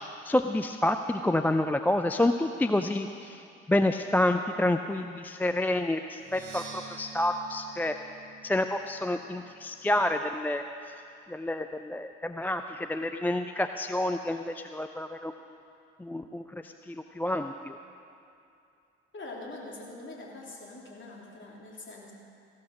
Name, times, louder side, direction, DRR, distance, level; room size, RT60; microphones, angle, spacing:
voice 1, 0.2-3.4 3.7-8.0 8.4-10.6 11.3-15.3 16.0-17.8, left 1 dB, 5° left, 7 dB, 0.4 m, -28 dB
Percussion, 6.2-10.0, right 5 dB, 60° right, 1.8 m, -48 dB
voice 2, 19.1-22.1, left 2 dB, 35° left, -2 dB, 3.5 m, -43 dB
15.0 x 11.5 x 6.1 m, 2.6 s
figure-of-eight pair, 50°, 34 cm